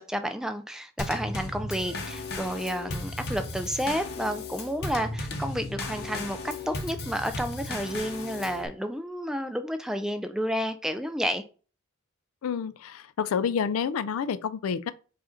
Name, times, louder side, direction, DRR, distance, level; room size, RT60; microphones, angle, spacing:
voice 1, 0.0-11.4, equal, 5° right, 0.3 m, -31 dB
Drum kit / Snare drum / Bass drum, 1.0-8.7, left 2 dB, 50° left, 0.8 m, -35 dB
voice 2, 12.4-14.9, left 7 dB, 80° left, 0.4 m, -29 dB
4.8 x 2.5 x 4.3 m
head